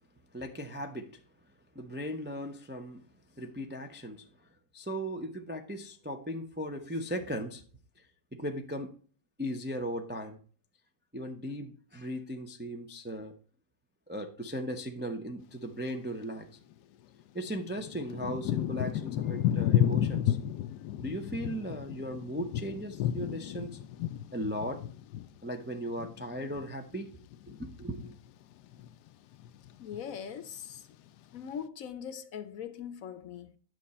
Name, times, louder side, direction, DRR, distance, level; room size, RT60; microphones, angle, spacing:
voice 1, 0.3-1.1 1.7-3.0 3.4-4.2 4.7-7.6 8.3-8.9 9.4-10.4 11.1-13.3 14.1-16.5 17.3-20.4 21.0-23.8 24.3-24.8 25.4-27.1 27.6-28.1, equal, 15° right, 0.4 m, -37 dB
Thunder / Rain, 16.7-16.8 17.5-27.0 27.3-28.2 28.7-29.1 29.3-30.2 30.8-30.9, left 11 dB, 85° left, 1.2 m, -32 dB
voice 2, 29.8-30.9 31.3-33.6, left 8 dB, 65° left, 1.1 m, -41 dB
9.2 x 6.5 x 4.2 m
omnidirectional pair, 1.7 m